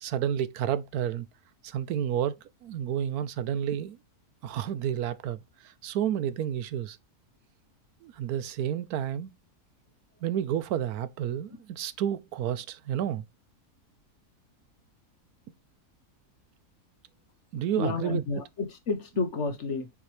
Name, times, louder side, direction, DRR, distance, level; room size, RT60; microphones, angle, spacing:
voice 1, 0.0-1.3 1.6-4.0 4.4-7.0 8.0-9.3 10.2-13.2 17.5-18.2, right 10 dB, 75° right, 1.1 m, -30 dB
voice 2, 17.8-19.9, left 3 dB, 50° left, 1.2 m, -30 dB
7.1 x 4.6 x 3.2 m
omnidirectional pair, 1.6 m